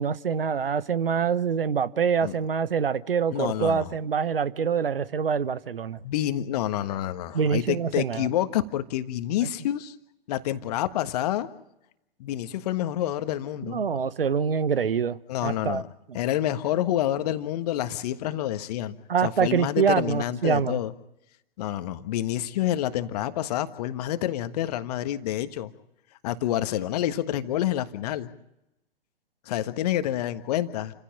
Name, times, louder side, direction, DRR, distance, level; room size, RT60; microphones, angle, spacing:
voice 1, 0.0-6.0 7.3-8.3 13.7-15.8 16.1-16.2 19.1-20.8, right 6 dB, 70° right, 1.1 m, -25 dB
voice 2, 3.3-3.9 6.0-9.9 10.3-11.5 12.2-13.8 15.3-15.8 16.1-19.0 19.2-20.9 21.6-25.7 26.2-28.3 29.5-30.9, left 12 dB, 40° left, 1.5 m, -28 dB
29.0 x 16.0 x 8.7 m
figure-of-eight pair, 110°, 30 cm